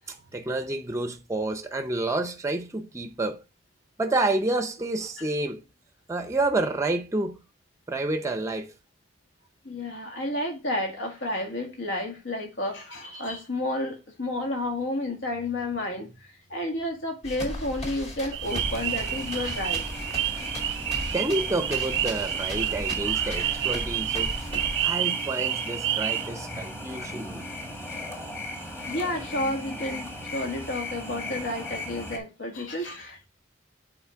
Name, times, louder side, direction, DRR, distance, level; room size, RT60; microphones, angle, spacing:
voice 1, 0.1-3.4 4.0-5.6 6.1-7.4 7.9-8.7 21.1-24.4 24.8-27.5, right 2 dB, 15° right, 0.6 m, -29 dB
voice 2, 9.6-16.1 16.5-19.9 28.9-33.3, left 1 dB, 70° left, 1.7 m, -31 dB
sound 1, 17.2-24.9, left 1 dB, 35° left, 1.8 m, -37 dB
sound 2, 18.3-26.3, right 12 dB, 60° right, 0.5 m, -29 dB
sound 3, 18.4-32.2, left 1 dB, 15° left, 1.2 m, -38 dB
8.3 x 4.2 x 3.4 m
head